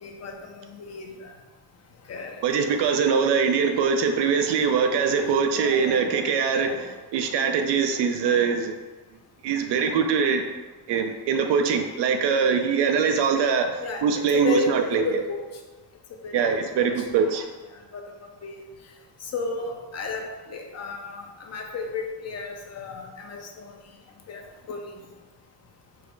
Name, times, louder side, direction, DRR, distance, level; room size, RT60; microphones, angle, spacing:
voice 1, 0.0-1.3 2.1-2.4 5.5-6.8 13.8-15.5 16.2-17.1 17.9-18.0 18.4-18.6 19.2-23.7 24.3-24.9, left 3 dB, 40° left, 2 dB, 0.6 m, -33 dB
voice 2, 2.4-8.7 9.4-10.5 10.9-15.2 16.3-17.5, right 6 dB, 85° right, 6 dB, 0.6 m, -23 dB
4.6 x 2.0 x 4.5 m, 1.3 s
cardioid pair, 140°, 40 cm